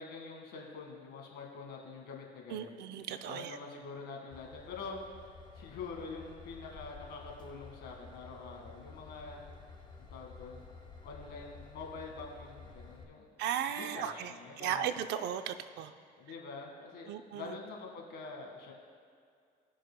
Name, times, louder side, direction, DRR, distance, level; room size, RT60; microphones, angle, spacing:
voice 1, 0.0-2.7 3.2-5.0 5.5-9.4 10.0-10.7 11.0-13.3 13.7-14.9 16.2-18.7, left 4 dB, 80° left, 0 dB, 1.8 m, -45 dB
voice 2, 2.5-3.5 13.4-14.3 14.6-15.9 17.1-17.5, right 9 dB, 80° right, 10 dB, 0.5 m, -36 dB
Train / Engine, 4.3-13.0, left 5 dB, 25° left, 0.9 m, -52 dB
18.5 x 6.2 x 2.2 m, 2.3 s
cardioid pair, 110°, 17 cm